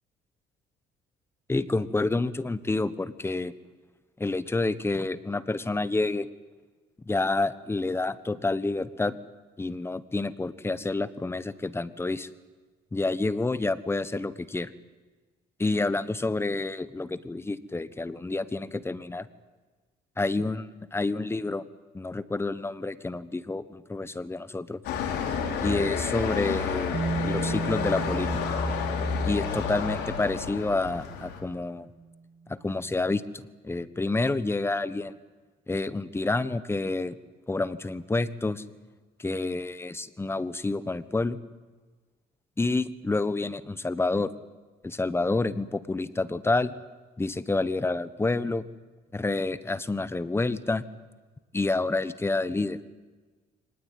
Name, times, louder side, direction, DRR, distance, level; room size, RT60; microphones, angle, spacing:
voice 1, 1.5-3.5 4.2-6.3 7.1-9.2 9.6-12.3 12.9-14.7 15.6-19.3 20.2-21.6 21.9-24.8 25.6-27.0 27.2-28.3 29.2-31.9 32.5-33.2 33.6-35.1 35.7-37.2 37.5-38.6 39.2-41.4 42.6-44.3 44.8-46.7 47.2-48.6 49.1-50.8 51.5-52.8, left 3 dB, 15° left, 14 dB, 1.2 m, -28 dB
sound 1, 24.8-31.4, left 5 dB, 80° left, 5.2 m, -30 dB
Bass guitar, 26.9-30.9 32.0-32.1, right 4 dB, 25° right, 1.8 m, -34 dB
25.0 x 19.5 x 9.4 m, 1.3 s
cardioid pair, 110°, 17 cm